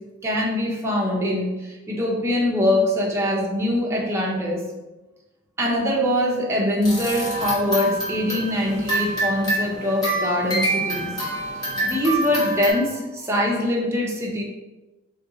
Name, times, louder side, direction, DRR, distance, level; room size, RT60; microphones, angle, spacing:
voice 1, 0.2-4.6 5.6-11.1 11.6-14.4, left 1 dB, 15° right, -3 dB, 0.5 m, -23 dB
sound 1, 6.8-12.7, right 1 dB, 20° left, 0.9 m, -26 dB
2.7 x 2.6 x 3.6 m, 1.1 s
head